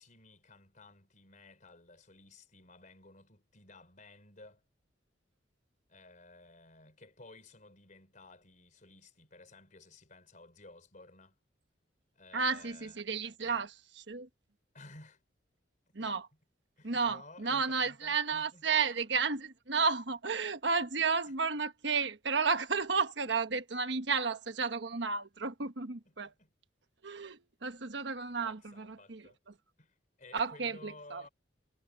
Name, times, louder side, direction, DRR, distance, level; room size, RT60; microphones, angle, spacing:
voice 1, 0.0-4.6 5.9-11.4 12.1-13.0 14.7-15.2 16.0-16.2 16.8-19.1 21.3-21.4 26.2-26.5 28.3-29.4 29.8-31.3, left 2 dB, 45° left, 4.5 m, -55 dB
voice 2, 12.3-14.3 15.9-16.3 16.8-26.3 27.0-29.3 30.3-31.2, right 5 dB, 65° right, 1.3 m, -32 dB
head